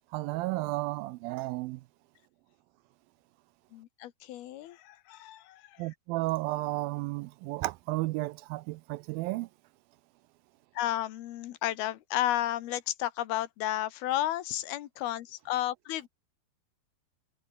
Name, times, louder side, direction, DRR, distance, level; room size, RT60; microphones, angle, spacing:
voice 1, 0.1-1.8 5.8-9.5, right 20 dB, 80° right, 2.2 m, -33 dB
voice 2, 3.7-5.9 10.8-16.1, left 14 dB, 80° left, 3.1 m, -32 dB
omnidirectional pair, 4.4 m